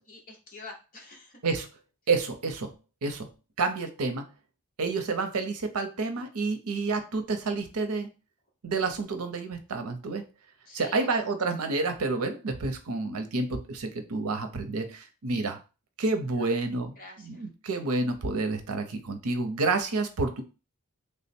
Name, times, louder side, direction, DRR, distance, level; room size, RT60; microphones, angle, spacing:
voice 1, 0.1-1.3 10.7-11.1 16.4-16.5 17.0-17.4, left 3 dB, 40° left, 0 dB, 1.0 m, -46 dB
voice 2, 2.1-2.7 3.0-3.3 3.6-4.2 4.8-8.1 8.6-10.2 10.7-15.6 16.0-20.4, right 3 dB, 85° right, 7 dB, 0.6 m, -29 dB
3.4 x 2.1 x 4.2 m, 0.31 s
head